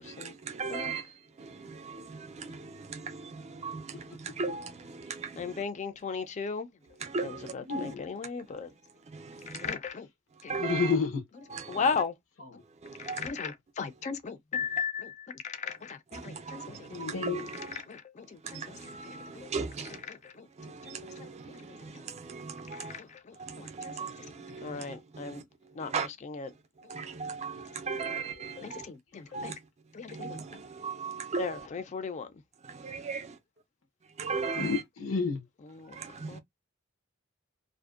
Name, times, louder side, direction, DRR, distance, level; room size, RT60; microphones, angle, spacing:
voice 1, 0.6-1.0 1.9-2.0 2.9-3.0 3.6-3.8 4.4-4.7 5.2-5.3 7.1-7.9 10.5-10.9 11.5-11.8 13.1-13.3 16.5-16.6 17.0-17.7 18.9-19.9 20.9-21.2 22.3-22.9 23.8-24.1 24.5-24.6 25.9-26.1 26.9-28.8 29.3-29.5 30.1-30.4 30.8-31.6 33.1-33.2 34.2-34.8 36.0-36.3, right 4 dB, 35° right, 0.4 m, -35 dB
voice 2, 5.4-6.7 7.2-8.7 9.6-10.1 11.7-12.1 13.0-16.8 17.1-17.2 17.9-18.0 18.5-18.6 19.4-19.5 20.1-20.2 20.9-21.0 22.9-23.1 23.8-23.9 24.6-25.4 25.8-26.5 28.6-29.5 29.9-30.4 31.4-32.3 35.6-35.9 36.3-36.4, left 5 dB, 35° left, 0.4 m, -35 dB
voice 3, 7.6-8.0 10.6-11.2 16.9-17.5 34.6-35.4, left 4 dB, 85° left, 0.8 m, -30 dB
2.5 x 2.1 x 2.3 m
head